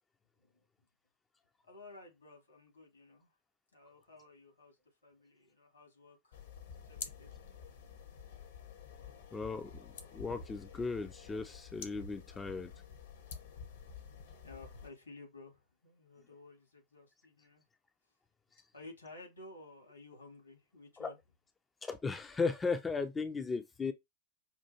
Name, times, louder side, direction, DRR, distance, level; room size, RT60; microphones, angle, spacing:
voice 1, 1.6-3.4 3.7-6.4 6.7-7.3 14.4-17.6 18.7-21.2, left 2 dB, 80° left, 2.1 m, -54 dB
sound 1, 6.3-14.9, left 6 dB, 60° left, 0.9 m, -49 dB
voice 2, 9.3-12.7 21.0-21.1 21.8-23.9, left 4 dB, 15° left, 0.4 m, -36 dB
5.5 x 2.4 x 2.8 m
figure-of-eight pair, 90°, 0 cm